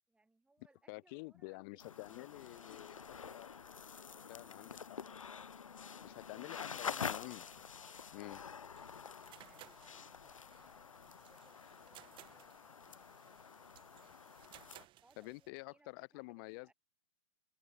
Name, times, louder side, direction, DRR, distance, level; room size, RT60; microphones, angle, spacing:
voice 1, 0.1-1.8 2.1-3.4 4.3-4.6 5.7-6.2 8.0-8.5 9.4-14.3 15.0-16.7, right 2 dB, 5° right, 7.9 m, -72 dB
voice 2, 0.9-2.9 3.3-3.5 4.3-5.0 6.0-7.6 8.1-8.4 15.2-16.7, left 27 dB, 40° left, 1.1 m, -49 dB
sound 1, 1.8-14.9, left 6 dB, 80° left, 0.9 m, -47 dB
sound 2, 8.7-15.5, right 15 dB, 30° right, 3.0 m, -61 dB
figure-of-eight pair, 110°, 17 cm